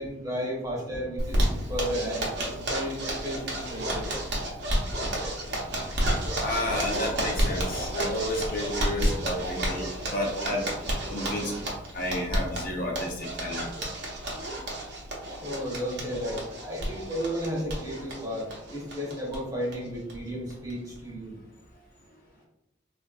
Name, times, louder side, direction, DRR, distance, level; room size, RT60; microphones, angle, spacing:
voice 1, 0.0-4.1 15.4-21.3, equal, 20° right, -4 dB, 0.9 m, -33 dB
Zipper (clothing), 1.2-19.4 19.7-19.8 20.1-20.2 20.5-21.0, right 1 dB, 60° right, 0.8 m, -31 dB
voice 2, 6.4-10.7 11.1-11.6 11.9-13.7, left 1 dB, 45° left, -1 dB, 0.6 m, -31 dB
3.6 x 2.4 x 2.3 m, 0.86 s
head